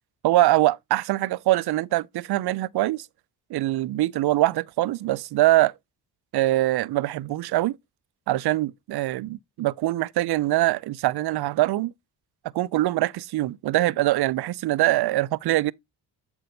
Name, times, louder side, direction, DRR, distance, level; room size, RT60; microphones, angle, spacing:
voice 1, 0.2-3.1 3.5-5.7 6.3-7.8 8.3-11.9 12.5-15.7, right 16 dB, 55° right, 0.5 m, -23 dB
7.7 x 2.7 x 5.3 m
supercardioid pair, 50°, 46 cm